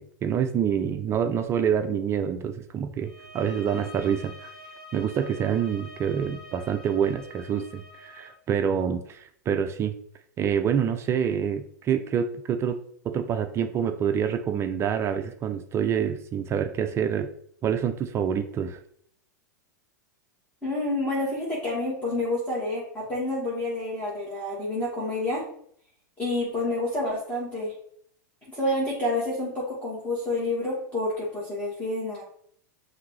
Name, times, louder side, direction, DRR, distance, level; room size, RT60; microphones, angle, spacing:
voice 1, 0.0-4.5 4.9-10.0 10.4-12.8 13.0-17.3 17.6-18.8, right 8 dB, 25° right, 7 dB, 0.4 m, -27 dB
sound 1, 3.0-8.4, left 1 dB, ahead, 1.0 m, -46 dB
voice 2, 20.6-25.4 26.2-27.7 28.5-32.2, left 1 dB, 15° left, -7 dB, 1.7 m, -28 dB
5.7 x 2.7 x 3.1 m, 0.64 s
hypercardioid pair, 110°, 10 cm